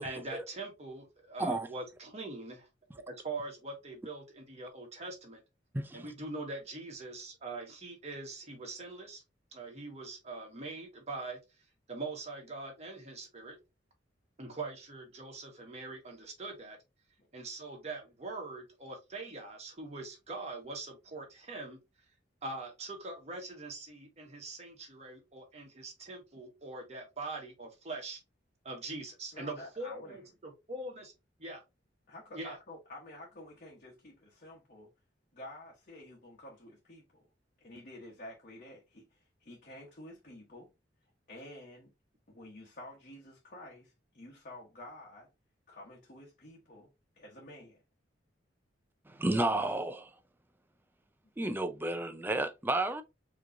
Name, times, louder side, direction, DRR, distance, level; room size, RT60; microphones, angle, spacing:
voice 1, 0.0-2.7 3.1-5.4 5.9-9.2 9.5-11.4 11.9-13.6 14.4-16.8 17.3-21.8 22.4-28.2 28.6-31.1 31.4-31.6 32.3-32.6, right 3 dB, 35° right, 1.5 m, -42 dB
voice 2, 5.7-6.1 49.1-50.1 51.4-53.0, right 2 dB, 10° right, 0.5 m, -32 dB
voice 3, 29.3-30.2 32.1-34.9 35.3-37.3 37.6-40.7 41.3-41.9 42.3-45.3 45.7-46.9 47.2-47.8, left 1 dB, 45° left, 1.2 m, -50 dB
4.7 x 3.1 x 2.7 m
head